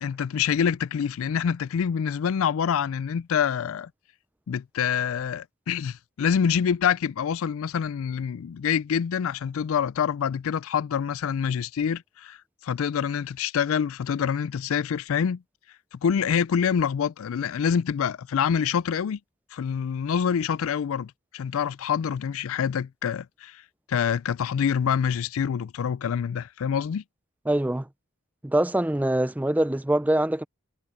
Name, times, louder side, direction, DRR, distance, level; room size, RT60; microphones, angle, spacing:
voice 1, 0.0-3.9 4.5-12.4 12.6-15.4 15.9-19.2 19.5-23.6 23.9-27.0, left 7 dB, 70° left, 0.3 m, -26 dB
voice 2, 27.5-27.9 28.4-30.4, right 1 dB, 5° right, 0.3 m, -24 dB
head